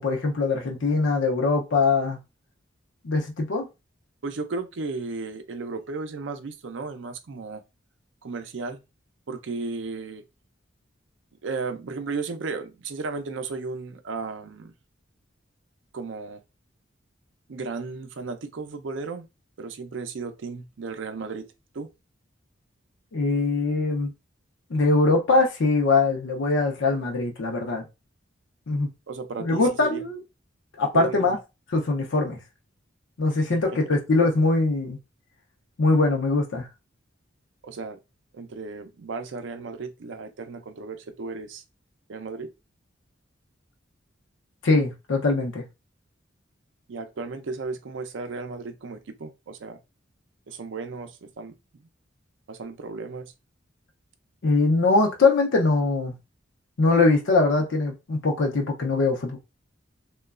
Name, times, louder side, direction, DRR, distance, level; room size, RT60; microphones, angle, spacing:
voice 1, 0.0-2.2 3.0-3.6 23.1-24.1 24.7-27.8 28.7-28.9 29.4-30.2 30.8-31.4 31.7-32.4 33.2-35.0 35.8-36.7 44.6-45.6 54.4-56.1 56.8-59.4, left 3 dB, 65° left, 0.5 m, -22 dB
voice 2, 4.2-7.6 8.2-8.8 9.3-10.2 11.4-14.7 15.9-16.4 17.5-19.3 19.6-21.5 21.7-21.9 29.1-30.0 30.9-31.4 33.3-34.0 37.6-38.0 38.3-41.6 42.1-42.5 46.9-49.8 50.5-51.9 52.5-53.3, right 4 dB, 70° right, 0.5 m, -35 dB
3.0 x 2.2 x 2.3 m
head